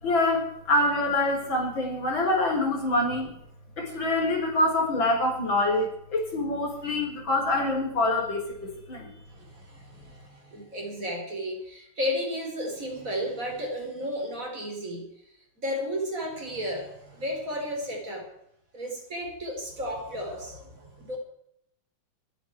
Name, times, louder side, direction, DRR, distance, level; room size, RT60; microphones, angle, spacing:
voice 1, 0.0-3.4 3.8-9.1, left 1 dB, 65° left, 1 dB, 5.2 m, -25 dB
voice 2, 9.3-15.0 15.6-18.3 18.7-21.2, equal, 40° right, 1 dB, 4.9 m, -33 dB
27.0 x 9.4 x 4.8 m, 0.75 s
omnidirectional pair, 2.3 m